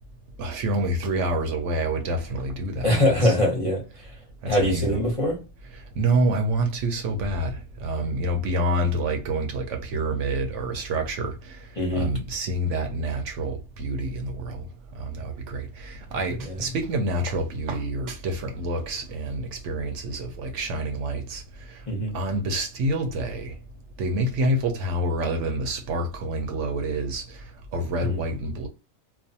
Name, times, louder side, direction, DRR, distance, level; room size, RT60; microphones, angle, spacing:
voice 1, 0.4-3.3 4.4-5.0 6.0-11.6 11.9-14.6 15.0-21.4 21.7-21.8 22.1-23.5 24.0-27.4 27.7-28.7, right 1 dB, 70° right, 0.8 m, -27 dB
voice 2, 2.8-4.1 4.5-5.4 11.8-12.1 16.4-16.6 21.9-22.1 28.0-28.2, left 1 dB, 30° left, 0.7 m, -23 dB
2.4 x 2.2 x 2.7 m
omnidirectional pair, 1.4 m